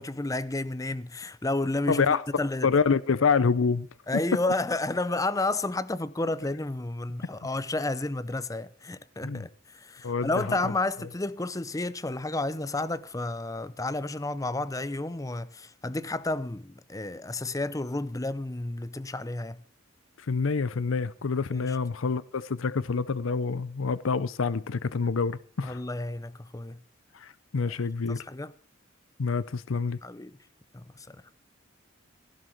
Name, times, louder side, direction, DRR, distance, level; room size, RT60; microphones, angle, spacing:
voice 1, 0.0-2.7 4.1-19.6 21.5-21.8 25.6-26.8 27.7-27.8 28.1-28.5 30.0-30.4 30.7-31.2, left 2 dB, 15° left, 0.6 m, -31 dB
voice 2, 1.9-2.2 2.6-3.9 9.2-9.4 10.0-10.7 20.3-25.8 27.1-28.2 29.2-30.0, left 5 dB, 85° left, 0.6 m, -27 dB
16.5 x 11.5 x 4.5 m
head